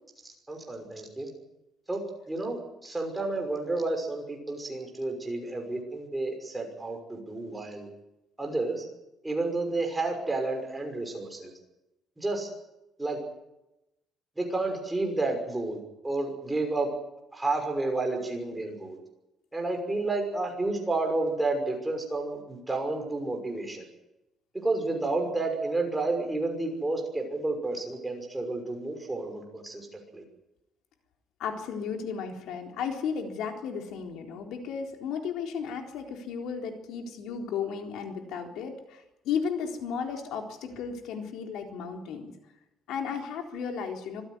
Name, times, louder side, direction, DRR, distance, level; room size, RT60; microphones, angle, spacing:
voice 1, 0.5-1.3 1.9-2.0 2.3-7.9 8.4-8.8 9.2-11.5 12.2-12.5 13.0-13.2 14.4-15.8 16.0-16.9 17.3-19.0 19.5-23.8 24.6-30.2, right 2 dB, 10° right, 2 dB, 5.9 m, -31 dB
voice 2, 31.4-42.3 42.9-44.2, left 6 dB, 80° left, 3 dB, 3.9 m, -34 dB
25.5 x 15.5 x 9.7 m, 0.93 s
cardioid pair, 150°, 0 cm